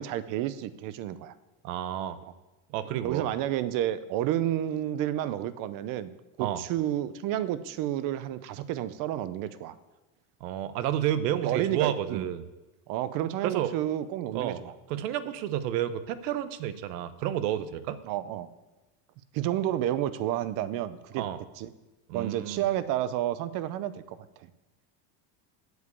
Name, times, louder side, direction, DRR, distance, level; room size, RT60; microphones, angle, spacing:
voice 1, 0.0-1.3 3.0-6.1 6.4-9.7 11.4-12.2 12.9-14.7 18.0-18.5 19.3-21.3 21.6-21.7 22.1-24.2, right 12 dB, 45° right, 15 dB, 0.6 m, -30 dB
voice 2, 1.6-2.2 2.7-3.3 6.4-6.6 10.4-12.4 13.4-13.7 14.3-14.6 14.9-18.0 21.2-21.4 22.1-22.6, right 11 dB, 80° right, 13 dB, 1.0 m, -30 dB
8.0 x 7.4 x 8.3 m, 1.1 s
cardioid pair, 160°, 48 cm